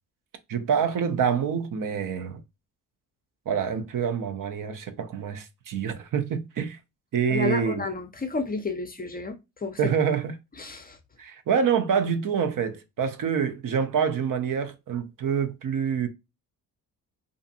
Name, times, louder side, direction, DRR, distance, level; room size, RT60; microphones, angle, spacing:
voice 1, 0.5-2.4 3.5-6.8 7.1-7.8 9.8-10.3 11.2-16.1, right 7 dB, 55° right, 0.7 m, -26 dB
voice 2, 7.3-9.9 10.6-11.0, left 3 dB, 25° left, 0.5 m, -31 dB
2.5 x 2.4 x 2.6 m
supercardioid pair, 65°, 39 cm